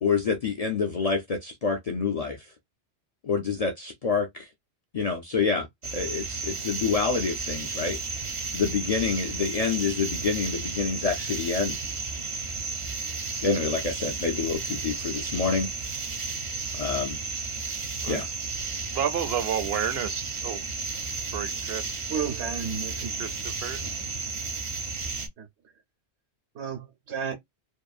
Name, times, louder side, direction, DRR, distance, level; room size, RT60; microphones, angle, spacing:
voice 1, 0.0-2.5 3.2-4.5 4.9-8.0 8.5-11.8 13.4-15.7 16.7-17.2 18.1-18.3, left 5 dB, 55° left, 0.4 m, -27 dB
sound 1, 5.8-25.3, right 4 dB, 45° right, 0.4 m, -33 dB
voice 2, 18.0-18.4 18.9-20.6 21.2-22.0 23.2-23.8, right 8 dB, 70° right, 0.8 m, -31 dB
voice 3, 22.1-23.2 25.4-25.5 26.5-27.3, right 7 dB, 85° right, 1.3 m, -32 dB
2.7 x 2.4 x 2.3 m
omnidirectional pair, 1.1 m